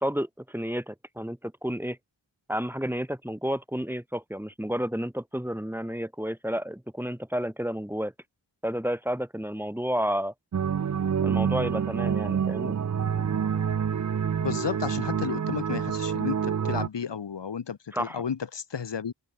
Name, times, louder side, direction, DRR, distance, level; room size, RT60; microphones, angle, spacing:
voice 1, 0.0-2.0 2.5-8.1 8.6-10.3 11.2-12.8 17.9-18.2, equal, 5° right, 3.2 m, -31 dB
sound 1, 10.5-16.9, right 7 dB, 45° right, 0.6 m, -27 dB
voice 2, 14.4-19.1, left 7 dB, 90° left, 2.1 m, -32 dB
open air
wide cardioid pair, 95°, 41 cm